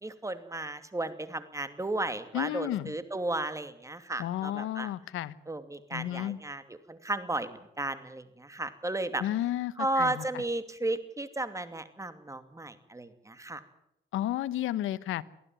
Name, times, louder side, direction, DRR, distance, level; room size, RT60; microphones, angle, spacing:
voice 1, 0.0-4.9 5.5-9.2 9.8-13.6, right 2 dB, 15° right, 11 dB, 2.5 m, -34 dB
voice 2, 2.3-2.9 4.2-5.3 5.9-6.4 9.2-10.4 14.1-15.2, left 13 dB, 85° left, 17 dB, 1.1 m, -32 dB
23.5 x 15.5 x 9.2 m, 0.78 s
cardioid pair, 90°, 20 cm